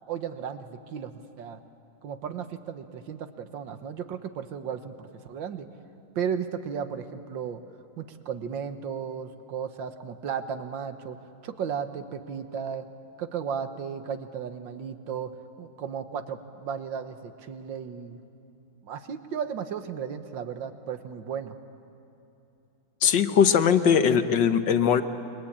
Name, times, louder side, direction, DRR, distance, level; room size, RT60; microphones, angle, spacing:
voice 1, 0.1-1.6 2.0-5.7 6.2-7.6 8.0-11.2 11.4-12.9 13.2-15.3 15.6-18.2 18.8-21.6, right 7 dB, 60° right, 9 dB, 1.8 m, -34 dB
voice 2, 23.0-25.0, left 7 dB, 60° left, 9 dB, 1.6 m, -20 dB
28.0 x 22.5 x 8.7 m, 2.9 s
omnidirectional pair, 2.4 m